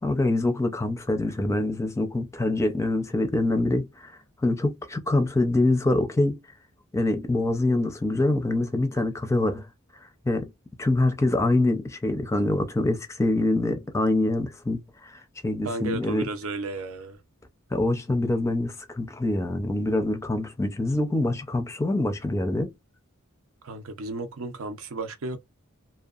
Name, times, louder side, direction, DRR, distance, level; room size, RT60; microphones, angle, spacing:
voice 1, 0.0-4.1 4.4-6.4 6.9-9.7 10.2-10.5 10.8-16.3 17.7-22.7, left 2 dB, 15° left, 0.5 m, -25 dB
voice 2, 15.6-17.2 23.6-25.4, right 2 dB, 80° right, 0.6 m, -33 dB
2.7 x 2.2 x 2.4 m
head